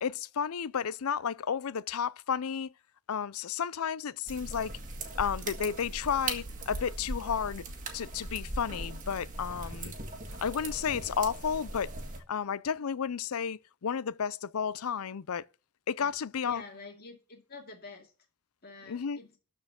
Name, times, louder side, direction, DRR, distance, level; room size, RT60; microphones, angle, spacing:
voice 1, 0.0-2.7 3.1-4.8 5.2-7.6 7.9-9.9 10.4-11.9 12.3-15.5 15.9-16.6 18.9-19.2, left 7 dB, 80° left, 0.5 m, -32 dB
sound 1, 4.3-12.2, right 2 dB, 35° right, 1.8 m, -39 dB
voice 2, 16.4-18.1 18.6-19.3, left 3 dB, 45° left, 2.5 m, -47 dB
13.0 x 4.5 x 7.4 m
head